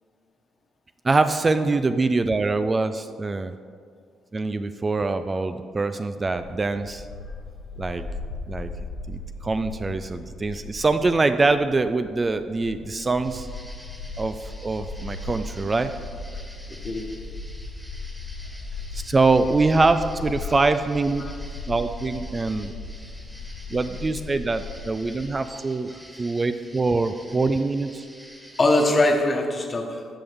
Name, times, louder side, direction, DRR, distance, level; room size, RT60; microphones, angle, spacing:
voice 1, 1.0-3.5 4.3-7.0 7.8-8.0 8.5-8.7 9.1-13.5 14.2-15.9 18.9-21.3 21.7-22.7 23.7-25.9 26.2-28.0, right 3 dB, 25° right, 9 dB, 0.4 m, -24 dB
Bark, 6.2-25.3, left 3 dB, 70° left, 2.0 m, -37 dB
sound 1, 13.2-29.1, equal, 10° right, 1.8 m, -48 dB
voice 2, 16.7-17.2 20.4-20.5 21.2-21.3 25.9-26.0 28.6-30.1, left 2 dB, 30° left, 3 dB, 1.2 m, -22 dB
14.5 x 5.4 x 3.5 m, 2.1 s
cardioid pair, 90°, 0 cm